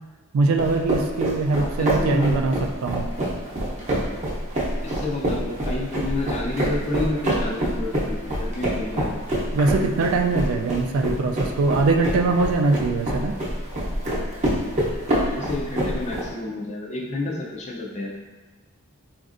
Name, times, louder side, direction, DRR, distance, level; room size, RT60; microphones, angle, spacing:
voice 1, 0.3-3.1 9.5-13.4, right 3 dB, 75° right, 4 dB, 0.3 m, -22 dB
sound 1, 0.6-16.2, right 1 dB, 30° right, 0.7 m, -26 dB
voice 2, 1.5-2.4 4.8-9.2 15.4-18.1, left 2 dB, 30° left, -2 dB, 0.4 m, -30 dB
4.1 x 2.5 x 2.5 m, 1.2 s
head